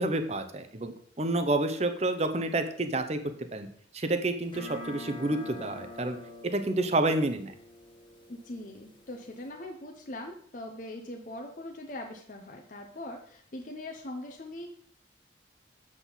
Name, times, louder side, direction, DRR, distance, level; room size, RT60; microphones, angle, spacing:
voice 1, 0.0-3.2 3.5-3.7 3.9-6.2 6.4-7.5, right 2 dB, 35° right, 8 dB, 0.7 m, -29 dB
sound 1, 4.5-9.5, left 1 dB, 25° left, 1.3 m, -46 dB
voice 2, 8.3-14.8, left 1 dB, 45° left, 3 dB, 0.8 m, -41 dB
7.6 x 6.1 x 4.0 m, 0.62 s
head